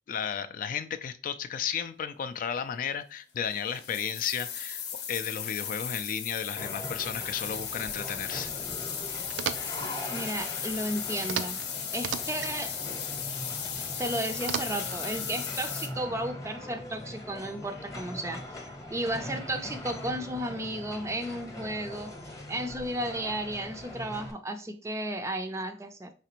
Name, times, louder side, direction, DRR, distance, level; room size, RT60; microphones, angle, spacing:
voice 1, 0.1-4.8 5.1-8.5, left 7 dB, 50° left, 0.3 m, -33 dB
sound 1, 3.4-15.9, left 8 dB, 70° left, 0.7 m, -36 dB
sound 2, 6.6-24.3, left 1 dB, 20° left, 0.8 m, -41 dB
sound 3, 9.3-9.9 11.2-11.7 11.9-12.6 14.4-15.0, right 8 dB, 85° right, 0.4 m, -34 dB
voice 2, 10.1-11.6 11.9-12.8 14.0-22.1 22.5-26.1, right 1 dB, 15° right, 0.4 m, -34 dB
4.9 x 3.3 x 2.9 m
head